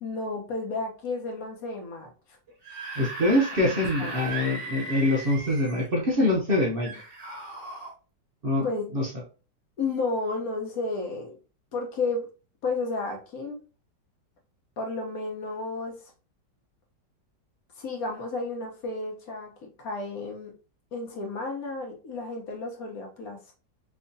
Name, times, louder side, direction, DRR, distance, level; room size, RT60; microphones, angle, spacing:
voice 1, 0.0-2.4 4.0-4.1 8.6-8.8 9.8-11.4 11.7-12.3 12.6-13.6 14.8-16.0 17.8-19.5 19.8-20.5 20.9-23.5, left 3 dB, 55° left, 1 dB, 1.4 m, -32 dB
Screaming / Screech, 2.5-5.9 6.8-7.9, right 2 dB, 70° right, 1.8 m, -37 dB
voice 2, 3.0-6.9 8.4-8.6 8.9-9.1, left 1 dB, 45° right, -3 dB, 0.7 m, -24 dB
4.5 x 2.8 x 2.7 m, 0.34 s
omnidirectional pair, 1.9 m